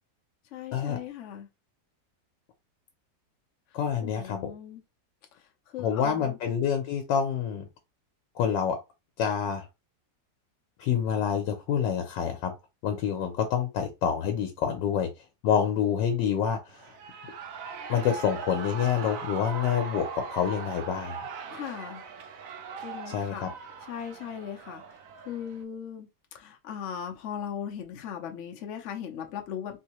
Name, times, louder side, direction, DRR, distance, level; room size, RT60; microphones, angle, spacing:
voice 1, 0.5-1.5 3.7-4.8 5.3-6.4 21.5-22.0 22.8-23.5 23.8-26.1 26.3-29.8, left 8 dB, 60° left, 0.8 m, -39 dB
voice 2, 3.7-4.5 5.8-7.7 8.4-8.8 9.2-9.7 10.8-12.5 12.8-15.1 15.4-16.9 17.9-21.2 23.1-23.5, left 8 dB, 85° left, 1.3 m, -27 dB
Shout / Cheering, 16.7-25.6, right 5 dB, 70° right, 0.8 m, -40 dB
3.4 x 2.7 x 2.9 m
omnidirectional pair, 1.9 m